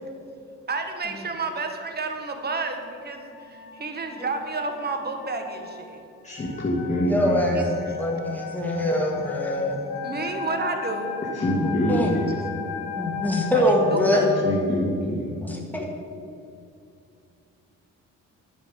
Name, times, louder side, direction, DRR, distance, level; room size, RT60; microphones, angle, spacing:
voice 1, 0.7-6.0 7.5-8.0 10.0-11.3 12.4-12.5 13.5-14.4, right 3 dB, 35° right, 5 dB, 1.3 m, -31 dB
sound 1, 2.6-14.5, left 7 dB, 85° left, 1.2 m, -35 dB
voice 2, 6.2-7.4 11.3-12.3 14.4-15.3, equal, 25° left, -5 dB, 1.9 m, -25 dB
voice 3, 7.1-9.8 11.6-12.1 13.0-14.2 15.4-15.9, left 1 dB, 5° left, -1 dB, 2.0 m, -24 dB
10.0 x 5.3 x 7.5 m, 2.5 s
cardioid pair, 90°, 30 cm